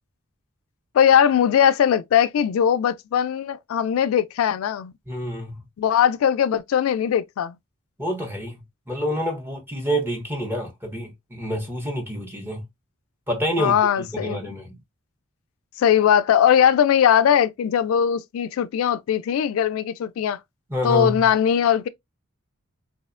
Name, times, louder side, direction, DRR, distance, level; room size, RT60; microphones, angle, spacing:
voice 1, 0.9-4.9 5.8-7.6 13.6-14.5 15.8-20.4 20.8-21.9, left 8 dB, 80° left, 0.3 m, -20 dB
voice 2, 5.1-5.6 8.0-8.6 8.9-12.6 13.3-14.7 20.7-21.2, equal, 10° right, 0.6 m, -28 dB
2.8 x 2.1 x 2.4 m
head